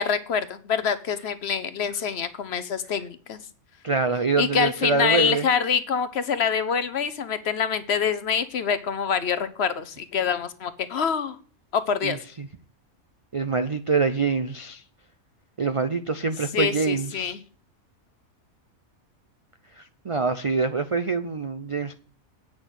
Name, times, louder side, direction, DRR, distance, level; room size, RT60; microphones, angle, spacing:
voice 1, 0.0-3.4 4.4-11.4 11.7-12.2 16.5-17.4, left 7 dB, 55° left, 0.9 m, -25 dB
voice 2, 3.8-5.5 12.0-12.5 13.3-14.8 15.6-17.3 19.8-21.9, right 4 dB, 60° right, 0.3 m, -25 dB
8.9 x 6.0 x 8.0 m
omnidirectional pair, 1.4 m